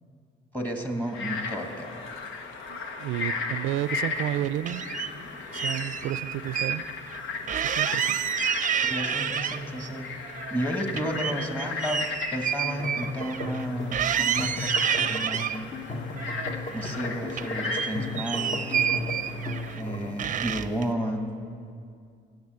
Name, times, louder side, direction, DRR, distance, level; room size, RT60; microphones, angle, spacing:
voice 1, 0.5-2.1 8.8-10.1 10.5-14.7 15.1-15.7 16.7-18.6 19.8-21.4, right 1 dB, 10° left, 4 dB, 1.6 m, -32 dB
Frog, 1.0-19.8, left 4 dB, 85° left, 1.2 m, -36 dB
voice 2, 2.7-4.8 5.5-6.8 7.5-8.3, right 13 dB, 90° right, 16 dB, 0.4 m, -31 dB
sound 1, 4.0-5.1 5.5-6.8 7.1-7.2 7.5-9.9 10.2-13.7 13.9-15.6 16.2-17.0 17.3-19.8 20.2-20.9, right 8 dB, 40° right, 0.5 m, -29 dB
sound 2, 12.6-20.2, left 2 dB, 35° left, 1.3 m, -35 dB
16.5 x 6.8 x 8.1 m, 2.3 s
cardioid pair, 90°, 20 cm